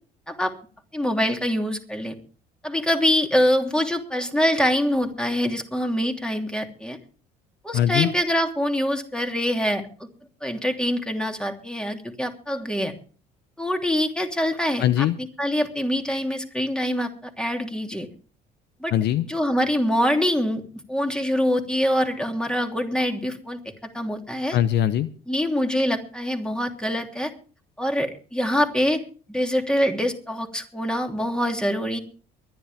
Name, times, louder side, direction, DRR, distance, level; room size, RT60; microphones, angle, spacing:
voice 1, 0.9-2.2 2.6-7.0 7.6-9.9 10.4-12.9 13.6-18.1 18.8-18.9 19.2-20.6 20.9-23.6 23.9-24.6 25.3-27.3 27.8-29.0 29.3-32.0, equal, 5° left, 4 dB, 3.0 m, -24 dB
voice 2, 7.7-8.1 14.8-15.2 18.9-19.3 24.5-25.1, left 11 dB, 60° left, 15 dB, 0.8 m, -21 dB
23.5 x 10.5 x 3.5 m, 0.40 s
hypercardioid pair, 65°, 20 cm